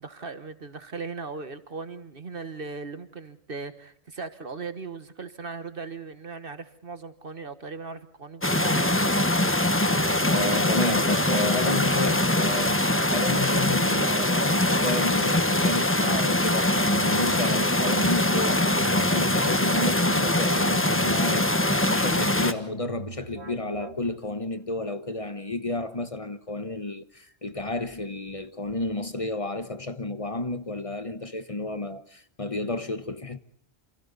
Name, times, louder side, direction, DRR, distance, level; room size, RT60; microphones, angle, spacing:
voice 1, 0.0-9.0, right 4 dB, 55° right, 1.6 m, -38 dB
sound 1, 8.4-22.5, left 1 dB, 10° left, 1.2 m, -23 dB
voice 2, 10.3-12.8 13.1-16.7 17.0-21.5 21.9-33.4, left 2 dB, 30° left, 1.2 m, -31 dB
sound 2, 16.4-24.4, right 3 dB, 75° right, 2.0 m, -43 dB
29.0 x 27.5 x 4.1 m
omnidirectional pair, 1.1 m